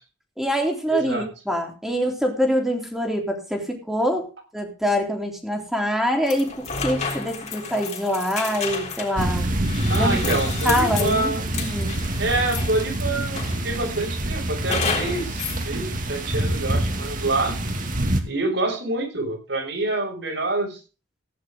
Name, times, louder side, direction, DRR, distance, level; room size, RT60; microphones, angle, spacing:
voice 1, 0.4-9.5 9.9-10.2 10.6-12.0, equal, ahead, 2 dB, 3.3 m, -25 dB
voice 2, 0.9-1.3 9.9-11.4 12.2-17.6 18.2-20.8, right 2 dB, 65° right, 3 dB, 6.5 m, -26 dB
sound 1, 6.3-12.9 13.4-13.9 14.7-15.6, left 5 dB, 40° left, 3.7 m, -31 dB
sound 2, 9.2-18.2, right 1 dB, 45° right, 2.4 m, -26 dB
16.5 x 10.5 x 3.8 m, 0.33 s
head